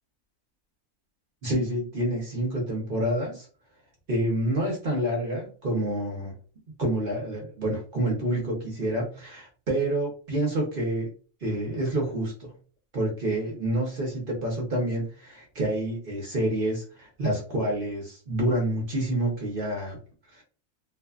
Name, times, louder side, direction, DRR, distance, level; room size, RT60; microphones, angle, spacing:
voice 1, 1.4-3.5 4.1-6.3 6.8-11.1 11.4-12.5 12.9-20.0 20.3-20.4, right 1 dB, 45° right, -1 dB, 0.8 m, -28 dB
2.6 x 2.2 x 2.3 m, 0.38 s
omnidirectional pair, 1.6 m